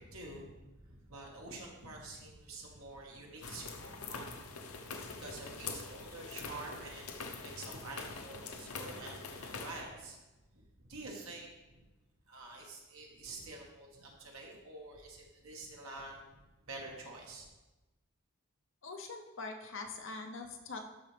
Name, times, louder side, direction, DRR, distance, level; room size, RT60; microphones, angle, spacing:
voice 1, 0.0-10.2 10.5-11.5 11.7-11.8 12.3-16.4 16.7-17.5, right 2 dB, 80° right, -1 dB, 1.6 m, -48 dB
sound 1, 3.4-9.8, left 4 dB, 90° left, 0.7 m, -44 dB
voice 2, 18.8-20.8, left 3 dB, 60° left, 3 dB, 0.8 m, -43 dB
12.0 x 4.2 x 3.4 m, 1.1 s
head